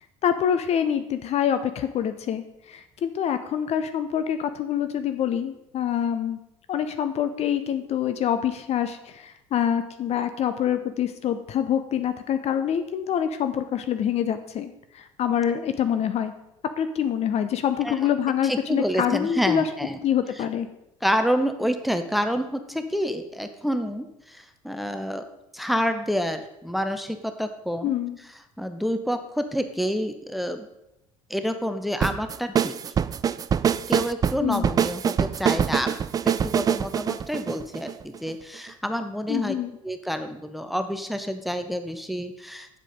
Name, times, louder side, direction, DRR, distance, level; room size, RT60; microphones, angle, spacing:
voice 1, 0.2-6.4 6.7-16.3 16.8-19.7 20.0-20.7 27.8-28.2 34.4-34.7 39.3-39.8, left 9 dB, 40° left, 10 dB, 0.7 m, -26 dB
voice 2, 17.8-18.1 18.4-20.0 20.4-20.5 21.0-25.2 25.5-27.9 28.6-30.7 31.3-32.8 33.9-36.0 36.2-39.5 39.8-42.7, equal, ahead, 8 dB, 0.8 m, -28 dB
sound 1, 32.0-38.3, right 8 dB, 20° right, 0.3 m, -24 dB
8.3 x 7.5 x 5.2 m, 0.87 s
figure-of-eight pair, 60°, 17 cm